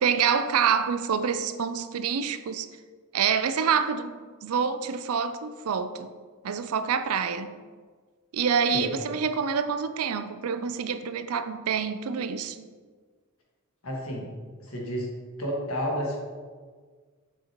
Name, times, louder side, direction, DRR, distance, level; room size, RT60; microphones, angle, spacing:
voice 1, 0.0-2.7 3.1-6.1 6.4-7.5 8.3-12.7, right 6 dB, 85° right, 0.4 m, -27 dB
voice 2, 8.7-9.2 13.8-14.3 14.6-15.1 15.4-16.2, equal, 75° left, 1.7 m, -31 dB
6.8 x 6.5 x 3.0 m
head